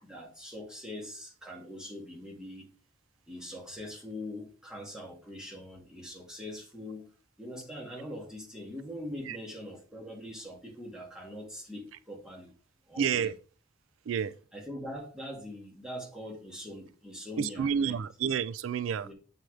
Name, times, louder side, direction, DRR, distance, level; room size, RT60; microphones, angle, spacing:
voice 1, 0.0-2.7 3.3-7.1 7.4-12.5 12.9-13.3 14.5-18.0 19.0-19.1, left 1 dB, 5° right, 2.3 m, -42 dB
voice 2, 13.0-13.3 14.1-14.3 17.4-19.1, right 7 dB, 75° right, 0.4 m, -29 dB
7.6 x 5.9 x 3.3 m
head